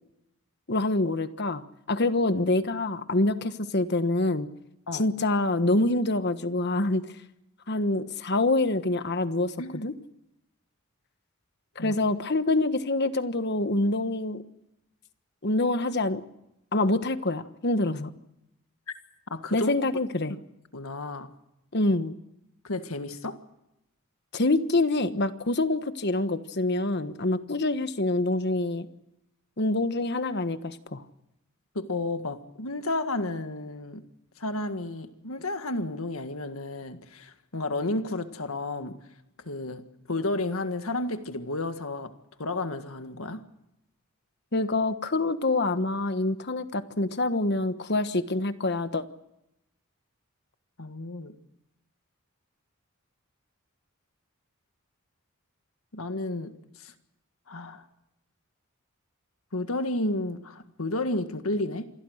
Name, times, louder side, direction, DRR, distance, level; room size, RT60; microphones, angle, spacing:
voice 1, 0.7-4.5 4.9-7.1 7.7-9.9 11.8-14.4 15.4-16.2 16.7-18.1 19.5-20.3 21.7-22.1 24.3-28.9 29.6-31.0 44.5-49.0, left 2 dB, 50° left, 11 dB, 1.3 m, -26 dB
voice 2, 19.3-19.7 20.3-20.4 20.7-21.3 22.6-23.4 31.7-34.0 34.4-39.0 39.4-42.1 42.4-43.4 50.8-51.3 55.9-56.5 56.8-56.9 57.5-57.8 59.5-61.8, left 2 dB, 75° left, 8 dB, 1.8 m, -32 dB
27.0 x 21.5 x 6.5 m, 0.87 s
head